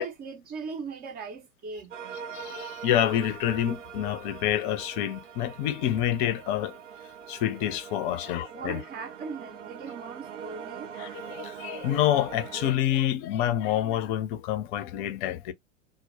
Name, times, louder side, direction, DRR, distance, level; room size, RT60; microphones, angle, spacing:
voice 1, 0.0-2.1 8.1-10.9, right 5 dB, 25° right, 0.5 m, -39 dB
sound 1, 1.9-12.7, right 8 dB, 85° right, 0.5 m, -42 dB
voice 2, 2.3-6.7 7.3-8.8 11.0-15.5, left 11 dB, 45° left, 0.6 m, -27 dB
2.1 x 2.1 x 2.9 m
hypercardioid pair, 100°, 36 cm